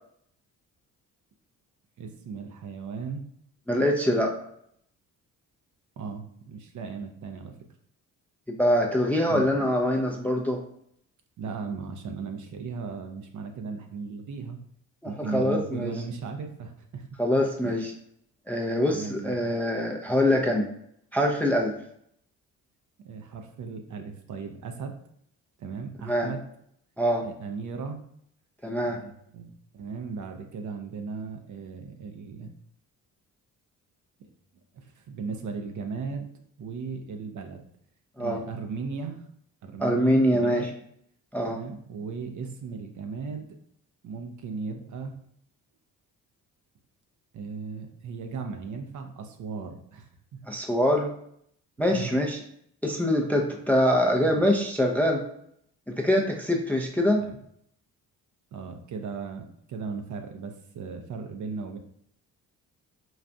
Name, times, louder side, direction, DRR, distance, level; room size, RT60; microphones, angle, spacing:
voice 1, 2.0-3.2 6.0-7.6 9.3-9.5 11.4-14.6 15.0-17.1 17.6-17.8 18.9-19.5 23.0-25.0 25.6-26.4 27.2-28.0 28.8-32.5 34.7-36.3 36.6-37.6 38.2-39.3 39.6-40.7 41.4-43.5 44.0-45.2 47.3-50.4 51.9-52.2 54.2-54.5 57.2-57.4 58.5-61.8, right 5 dB, 45° right, 5 dB, 0.5 m, -37 dB
voice 2, 3.7-4.3 8.6-10.6 15.0-15.9 17.2-17.9 18.5-20.7 21.1-21.8 26.1-26.3 27.0-27.2 28.6-29.0 38.2-38.4 39.8-40.7 41.3-41.6 50.5-51.1 51.8-52.4 52.8-55.2 55.9-57.2, equal, 5° left, 1 dB, 0.4 m, -24 dB
4.0 x 2.4 x 2.2 m, 0.69 s
hypercardioid pair, 50°, 43 cm